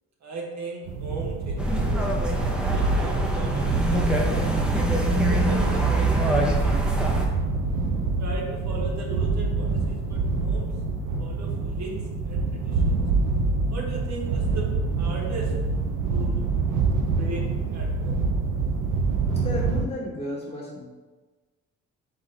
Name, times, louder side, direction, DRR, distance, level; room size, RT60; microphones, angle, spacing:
voice 1, 0.2-4.4 5.2-6.9 8.2-10.7 11.2-13.0 13.7-15.5 16.1-16.4 16.9-18.2, right 2 dB, 65° right, -1 dB, 0.9 m, -37 dB
sound 1, 0.9-19.9, right 3 dB, 80° right, 0.6 m, -26 dB
sound 2, 1.6-7.3, right 1 dB, 5° right, 0.6 m, -25 dB
voice 2, 19.2-20.8, left 1 dB, 25° left, -6 dB, 1.1 m, -33 dB
3.9 x 3.8 x 3.2 m, 1.3 s
cardioid pair, 90°, 30 cm